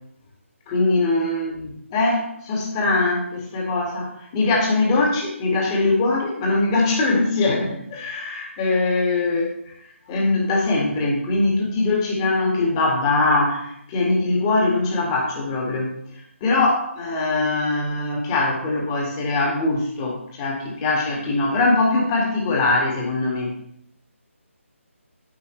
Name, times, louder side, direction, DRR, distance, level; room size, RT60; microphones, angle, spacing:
voice 1, 0.7-9.5 10.1-15.9 16.4-23.5, left 2 dB, 20° left, -1 dB, 2.2 m, -22 dB
10.5 x 8.3 x 3.3 m, 0.71 s
figure-of-eight pair, 155°, 7 cm